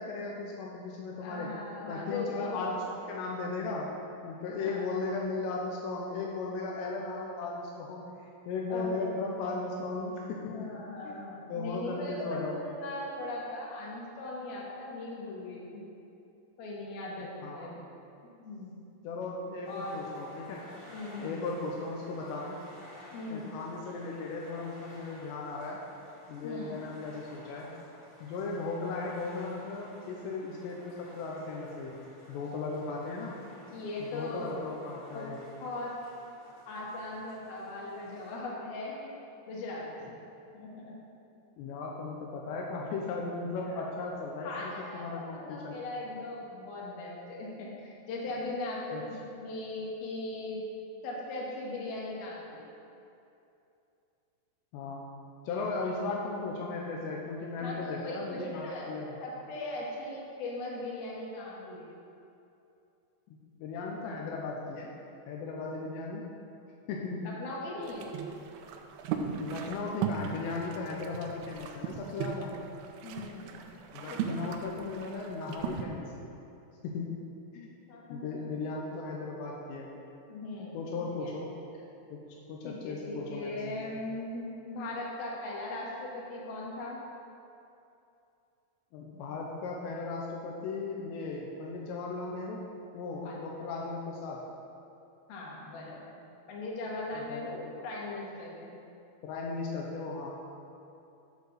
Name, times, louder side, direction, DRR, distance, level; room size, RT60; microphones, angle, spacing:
voice 1, 0.0-1.6 1.9-4.0 4.2-10.7 11.0-11.2 11.5-12.7 17.4-17.7 19.0-20.7 21.2-22.6 23.3-25.8 26.3-27.7 28.2-33.4 34.0-35.4 41.6-45.8 48.9-49.0 54.7-55.1 55.5-59.2 63.3-64.9 65.3-66.3 66.9-67.3 69.4-72.5 73.9-76.3 76.8-77.2 77.5-77.7 78.1-79.9 80.7-81.6 82.1-82.2 82.5-83.8 88.9-94.4 97.1-97.7 99.2-100.3, left 3 dB, 85° left, -2 dB, 3.0 m, -37 dB
voice 2, 1.2-2.7 4.5-4.8 8.7-9.1 10.5-15.8 16.6-17.8 18.4-18.9 19.7-20.0 20.9-21.4 23.1-23.5 26.4-26.8 33.7-34.5 35.1-35.3 35.6-35.9 36.7-39.1 39.5-39.8 40.5-40.9 43.7-43.9 44.4-50.6 51.0-52.6 57.6-58.9 59.2-61.8 67.2-68.1 73.0-73.8 74.1-74.4 77.9-78.5 80.3-81.3 82.6-87.0 93.2-93.7 95.3-96.2 96.5-98.8, left 2 dB, 65° left, -4 dB, 3.2 m, -39 dB
sound 1, 19.6-38.4, left 1 dB, 25° left, 1.7 m, -54 dB
sound 2, 67.8-75.9, right 7 dB, 80° right, 2.4 m, -38 dB
11.5 x 4.6 x 6.5 m, 2.7 s
omnidirectional pair, 5.0 m